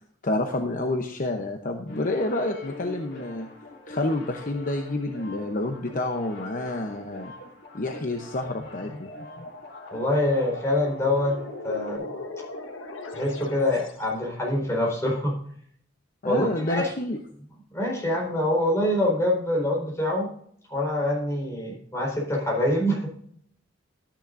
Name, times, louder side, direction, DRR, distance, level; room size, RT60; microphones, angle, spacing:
voice 1, 0.2-3.5 3.9-7.3 7.7-9.1 16.2-17.2, left 2 dB, 45° left, 4 dB, 0.9 m, -28 dB
sound 1, 1.9-12.0, left 3 dB, 60° left, 3.1 m, -44 dB
sound 2, 8.3-14.1, left 2 dB, 75° left, 1.4 m, -39 dB
voice 2, 9.9-11.4 11.6-12.1 13.1-15.4 16.2-16.9 17.7-20.3 20.7-23.1, left 1 dB, 15° left, -3 dB, 4.4 m, -25 dB
13.0 x 10.0 x 2.6 m, 0.63 s
head